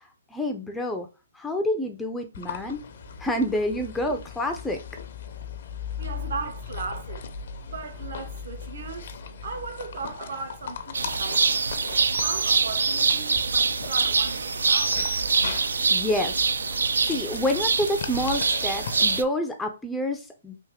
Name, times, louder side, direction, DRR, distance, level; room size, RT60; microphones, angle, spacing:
voice 1, 0.3-1.1 1.3-2.8 3.2-4.8 15.9-16.3 17.0-20.6, left 1 dB, 5° left, 0.4 m, -28 dB
sound 1, 2.3-19.2, left 6 dB, 60° left, 0.5 m, -39 dB
voice 2, 3.1-3.4 6.0-7.2 7.6-9.1 9.4-11.7 12.2-15.0, right 4 dB, 65° right, 0.9 m, -37 dB
sound 2, 10.9-19.2, right 4 dB, 90° right, 0.3 m, -24 dB
3.4 x 2.5 x 3.5 m
hypercardioid pair, 150°, 0 cm